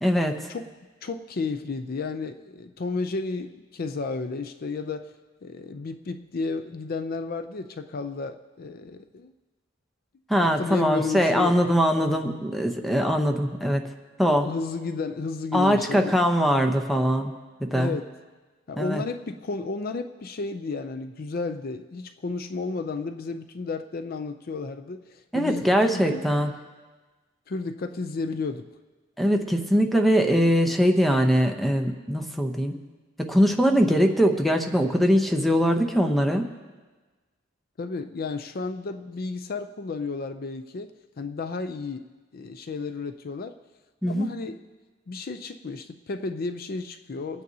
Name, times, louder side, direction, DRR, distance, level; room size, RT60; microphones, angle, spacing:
voice 1, 0.0-0.4 10.3-13.8 14.2-14.5 15.5-17.3 17.6-17.9 18.8-19.0 25.3-26.5 29.2-32.7 33.3-36.5 44.0-44.3, equal, ahead, 3 dB, 0.7 m, -22 dB
voice 2, 1.0-5.1 5.4-9.3 10.4-11.6 14.2-16.2 16.9-17.0 17.7-18.1 18.7-26.3 27.5-28.7 37.8-42.1 42.3-43.6 44.1-44.7 45.1-47.4, left 4 dB, 50° left, 9 dB, 0.5 m, -32 dB
25.5 x 9.2 x 2.8 m, 1.3 s
head